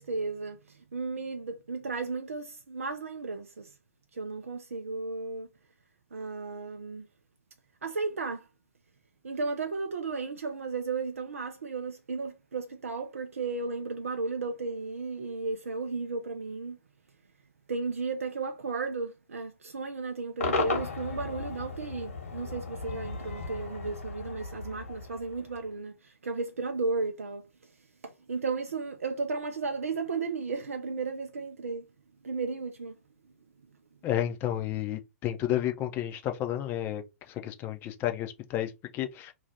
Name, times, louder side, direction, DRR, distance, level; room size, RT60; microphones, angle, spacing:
voice 1, 0.0-3.7 4.1-5.5 6.1-7.1 7.8-8.5 9.2-16.8 17.7-27.5 28.0-31.8 32.2-33.0, right 4 dB, 75° right, 0.5 m, -34 dB
Cheering / Crowd / Fireworks, 20.4-25.7, left 3 dB, 70° left, 1.2 m, -35 dB
voice 2, 34.0-39.3, left 12 dB, 30° left, 0.6 m, -31 dB
2.7 x 2.3 x 3.3 m
figure-of-eight pair, 110°, 8 cm